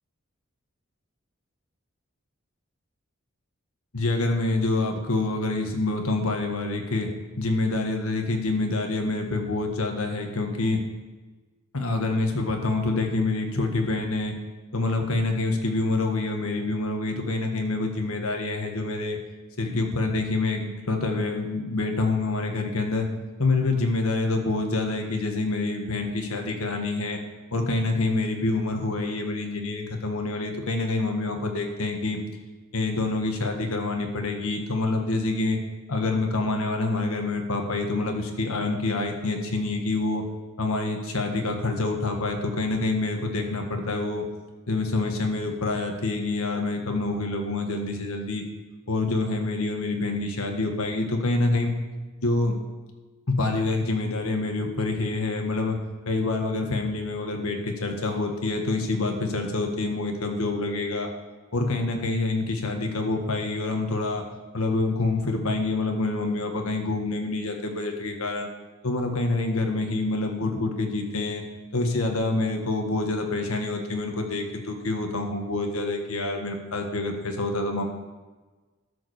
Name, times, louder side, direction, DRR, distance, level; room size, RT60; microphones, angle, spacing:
voice 1, 3.9-7.1 7.4-10.8 11.7-14.4 14.7-19.2 19.6-23.1 23.4-27.2 27.5-32.2 32.7-35.6 35.9-40.2 40.6-44.2 44.7-48.4 48.9-51.7 52.2-52.6 53.3-55.8 56.0-61.1 61.5-64.2 64.5-68.5 68.8-71.4 71.7-77.9, left 2 dB, 85° left, 3 dB, 1.6 m, -26 dB
13.0 x 4.9 x 6.5 m, 1.3 s
head